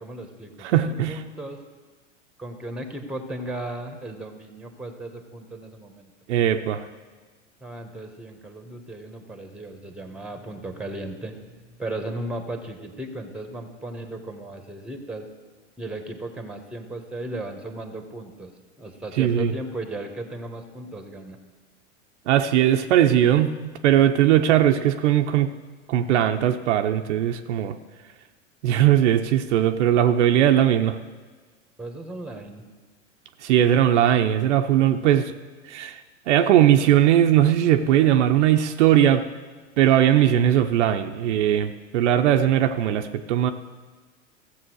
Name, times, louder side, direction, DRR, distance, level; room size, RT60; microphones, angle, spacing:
voice 1, 0.0-1.6 2.4-6.1 7.6-15.3 15.8-18.5 18.8-21.4 31.8-32.6, right 2 dB, 5° right, 6 dB, 1.5 m, -36 dB
voice 2, 0.6-1.2 6.3-6.8 19.2-19.5 22.3-25.5 25.9-27.8 28.6-31.0 33.4-35.3 35.7-36.0 36.3-39.2 39.8-43.5, right 11 dB, 65° right, 6 dB, 0.8 m, -19 dB
14.5 x 7.6 x 6.2 m, 1.4 s
hypercardioid pair, 100°, 37 cm